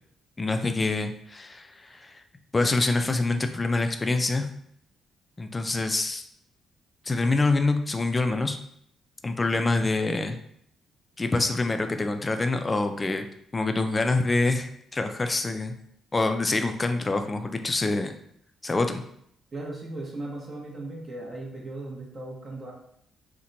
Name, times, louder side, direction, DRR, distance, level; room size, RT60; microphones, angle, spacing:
voice 1, 0.4-2.2 2.5-4.5 5.4-6.2 7.1-8.6 9.2-10.4 11.2-13.3 13.5-15.8 16.1-18.1 18.6-19.0, left 3 dB, 25° left, 7 dB, 0.3 m, -26 dB
voice 2, 19.5-22.7, right 2 dB, 40° right, -3 dB, 0.8 m, -37 dB
2.8 x 2.1 x 3.8 m, 0.71 s
cardioid pair, 90°, 0 cm